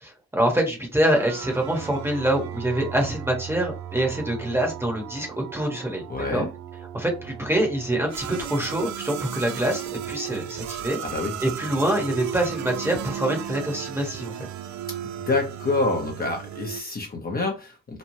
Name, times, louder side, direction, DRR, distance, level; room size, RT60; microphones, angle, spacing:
voice 1, 0.0-6.4 6.9-11.0 11.4-14.3, right 1 dB, 10° right, 1.0 m, -25 dB
sound 1, 1.1-16.8, right 10 dB, 70° right, 0.4 m, -35 dB
voice 2, 6.1-6.5 11.0-11.3 15.2-18.0, left 3 dB, 30° left, 0.8 m, -27 dB
3.1 x 2.2 x 2.7 m
cardioid pair, 90°, 30 cm